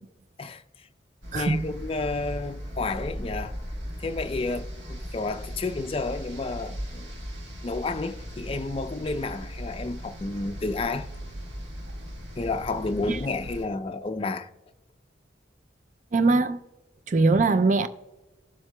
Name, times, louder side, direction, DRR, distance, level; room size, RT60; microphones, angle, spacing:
voice 1, 0.4-0.9 1.3-3.5 4.0-7.1 7.6-11.1 12.4-14.5, left 3 dB, 30° left, 0.4 m, -31 dB
sound 1, 1.2-13.7, equal, 85° right, 1.6 m, -38 dB
voice 2, 1.3-1.7 13.1-13.2 16.1-16.6 17.1-17.9, right 3 dB, 45° right, 0.4 m, -21 dB
19.0 x 7.5 x 2.2 m
head